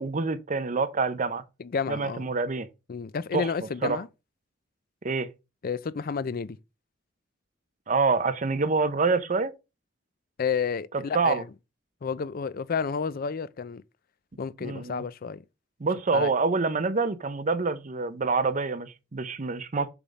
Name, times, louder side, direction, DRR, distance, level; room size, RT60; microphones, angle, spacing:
voice 1, 0.0-1.4 1.9-2.7 3.3-3.5 3.8-4.0 5.0-5.3 7.9-9.5 11.1-11.4 14.6-15.0 15.8-19.9, right 4 dB, 40° right, 0.7 m, -26 dB
voice 2, 1.6-2.3 2.9-4.1 5.6-6.6 10.4-11.5 12.0-13.8 14.4-15.4 16.1-16.3, left 6 dB, 50° left, 0.4 m, -30 dB
7.1 x 3.6 x 5.2 m
head